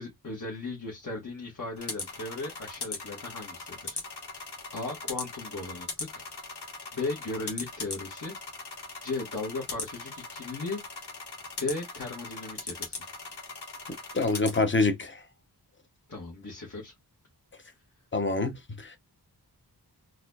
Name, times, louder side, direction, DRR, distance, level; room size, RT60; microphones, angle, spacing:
voice 1, 0.0-4.0 4.7-6.2 6.9-8.3 9.0-10.8 11.6-13.0 16.1-16.9 17.6-17.8, left 3 dB, 50° left, 1.4 m, -36 dB
sound 1, 1.8-14.6, left 3 dB, 75° left, 1.3 m, -40 dB
voice 2, 14.1-15.2 18.1-18.9, left 3 dB, 30° left, 0.8 m, -26 dB
4.1 x 2.4 x 2.7 m
wide cardioid pair, 65°, 40 cm